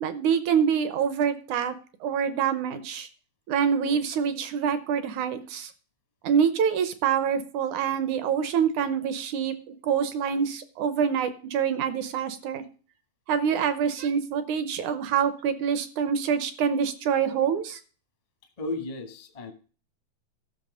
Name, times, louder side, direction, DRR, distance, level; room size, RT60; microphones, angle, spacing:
voice 1, 0.0-1.7 2.0-3.1 3.5-5.7 6.2-9.6 9.8-12.6 13.3-17.8, right 7 dB, 70° right, 12 dB, 2.0 m, -26 dB
voice 2, 18.6-19.5, left 2 dB, 35° left, 4 dB, 0.5 m, -34 dB
14.0 x 6.1 x 4.9 m, 0.38 s
omnidirectional pair, 4.1 m